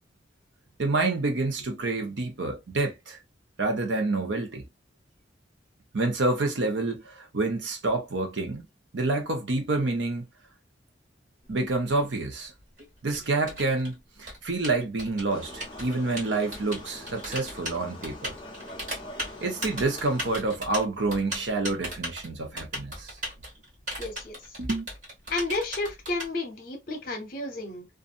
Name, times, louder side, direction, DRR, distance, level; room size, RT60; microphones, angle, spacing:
voice 1, 0.8-3.2 3.6-4.6 5.9-8.6 8.9-10.2 11.5-12.5 13.0-18.3 19.4-23.2 24.6-24.9, right 2 dB, 75° right, 0.8 m, -28 dB
Typing, 11.4-26.3, equal, 40° right, 1.2 m, -38 dB
sound 1, 15.3-20.4, left 2 dB, 25° left, 0.5 m, -44 dB
voice 2, 24.0-24.4 25.3-27.9, left 2 dB, 50° left, 0.8 m, -32 dB
2.6 x 2.4 x 2.4 m
head